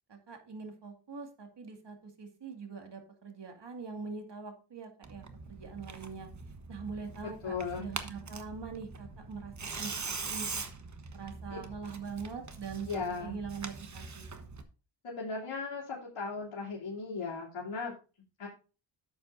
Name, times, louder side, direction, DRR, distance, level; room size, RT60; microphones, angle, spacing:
voice 1, 0.1-6.3 6.7-9.9 10.2-10.6 11.1-14.3, right 5 dB, 55° right, 4 dB, 2.3 m, -43 dB
Tearing, 5.0-14.6, right 4 dB, 35° right, 1.2 m, -43 dB
voice 2, 7.4-7.9 11.5-11.6 12.8-13.3 15.0-17.9 18.4-18.5, left 4 dB, 70° left, -6 dB, 3.0 m, -37 dB
11.0 x 7.7 x 2.7 m, 0.34 s
cardioid pair, 70°, 50 cm